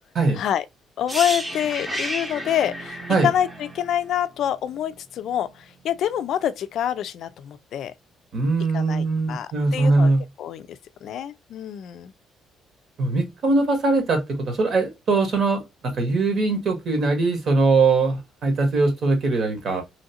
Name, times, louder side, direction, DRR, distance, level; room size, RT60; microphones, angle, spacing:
voice 1, 0.3-0.7 1.0-7.9 8.7-10.1 10.4-12.1, left 10 dB, 65° left, 0.3 m, -26 dB
sound 1, 1.1-4.9 5.2-5.4, right 1 dB, 10° right, 0.7 m, -32 dB
voice 2, 8.3-10.2 13.0-19.8, right 3 dB, 50° right, 1.2 m, -21 dB
3.1 x 2.5 x 2.7 m
cardioid pair, 115°, 0 cm